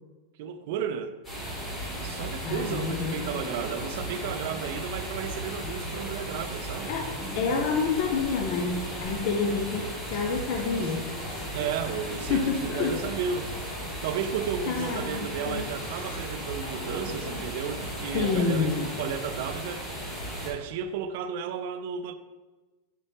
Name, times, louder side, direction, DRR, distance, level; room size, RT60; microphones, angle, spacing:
voice 1, 0.4-1.2 2.0-6.9 11.5-13.5 14.0-18.7 19.0-19.9 20.4-22.1, right 7 dB, 45° right, 0.4 m, -33 dB
sound 1, 1.2-20.5, right 1 dB, 10° left, 2.0 m, -36 dB
sound 2, 1.5-19.6, left 1 dB, 75° left, 1.3 m, -44 dB
voice 2, 2.4-3.2 6.9-7.1 7.3-11.0 11.8-11.9 12.3-13.0 14.7-15.7 17.8-18.9, left 5 dB, 40° left, 0.6 m, -28 dB
7.3 x 4.2 x 3.4 m
supercardioid pair, 180°, 0 cm